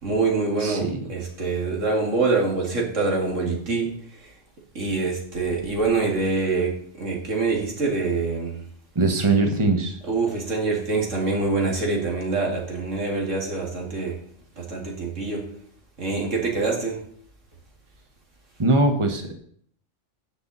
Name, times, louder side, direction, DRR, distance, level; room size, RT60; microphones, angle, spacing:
voice 1, 0.0-3.9 4.2-4.3 4.7-8.6 10.1-14.2 14.6-15.5 16.0-17.0, right 3 dB, 90° right, 0 dB, 2.7 m, -25 dB
voice 2, 0.6-1.0 8.9-10.0 18.6-19.3, right 2 dB, 25° right, 4 dB, 1.4 m, -21 dB
17.0 x 6.0 x 4.1 m, 0.63 s
omnidirectional pair, 1.3 m